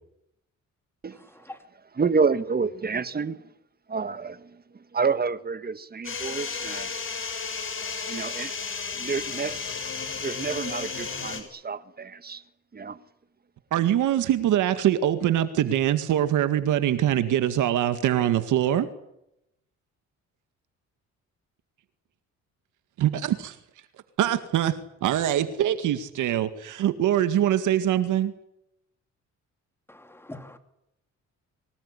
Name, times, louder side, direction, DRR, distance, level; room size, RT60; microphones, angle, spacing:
voice 1, 1.9-3.4 3.9-4.5 4.9-6.9 8.1-8.5 9.0-9.6 10.2-12.4 12.7-13.0, right 5 dB, 30° right, 1.7 m, -28 dB
sound 1, 6.0-11.4, left 5 dB, 45° left, 6.0 m, -33 dB
voice 2, 13.7-18.9 23.0-23.6 24.2-28.3, right 11 dB, 80° right, 2.0 m, -23 dB
voice 3, 29.9-30.6, left 1 dB, 10° left, 3.3 m, -42 dB
25.0 x 19.0 x 9.9 m
cardioid pair, 90°, 30 cm